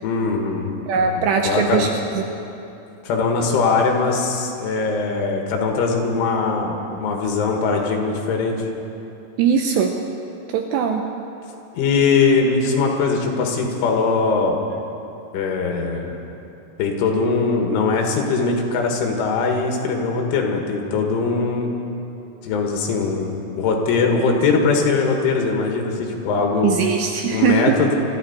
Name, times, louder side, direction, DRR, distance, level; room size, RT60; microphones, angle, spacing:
voice 1, 0.0-1.9 3.0-8.7 11.7-14.6 15.3-16.1 16.8-21.7 22.4-26.8 27.3-28.0, left 4 dB, 80° left, 1 dB, 4.0 m, -21 dB
voice 2, 0.9-1.9 2.2-2.3 9.4-10.0 10.5-11.1 26.6-27.8, right 7 dB, 85° right, 3 dB, 2.6 m, -20 dB
24.5 x 13.5 x 4.2 m, 2.9 s
omnidirectional pair, 5.7 m